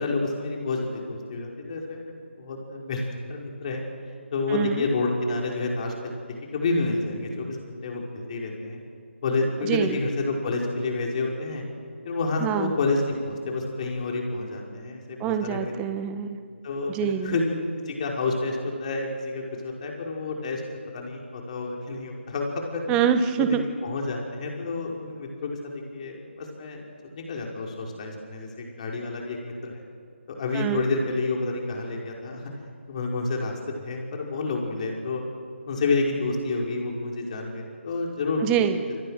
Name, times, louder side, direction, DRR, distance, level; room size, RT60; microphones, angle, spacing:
voice 1, 0.0-2.1 2.4-3.0 3.3-3.8 4.3-6.1 6.5-8.8 9.2-11.6 12.0-15.7 16.6-17.5 17.9-20.6 20.9-22.9 23.4-26.8 27.1-29.8 30.4-32.5 32.9-33.5 33.8-35.2 35.7-38.4, left 3 dB, 35° left, 0 dB, 5.4 m, -29 dB
voice 2, 4.5-4.8 9.7-10.0 12.4-12.7 15.2-16.4 16.9-17.4 22.9-23.6 30.5-30.8 38.4-38.8, right 9 dB, 15° right, 9 dB, 1.3 m, -25 dB
28.5 x 28.5 x 6.7 m, 2.1 s
figure-of-eight pair, 155°, 7 cm